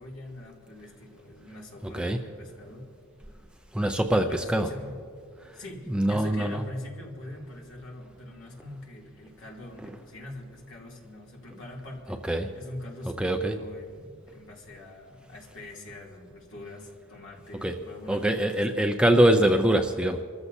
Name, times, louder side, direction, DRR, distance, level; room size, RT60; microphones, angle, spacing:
voice 1, 0.0-2.9 4.2-5.0 5.5-19.4, left 1 dB, 60° left, -3 dB, 2.8 m, -43 dB
voice 2, 1.8-2.2 3.7-4.7 5.4-5.6 5.9-6.6 12.3-12.5 13.2-13.6 17.6-17.7 18.1-20.2, right 1 dB, 5° right, 5 dB, 0.5 m, -23 dB
27.5 x 14.0 x 2.7 m, 2.2 s
head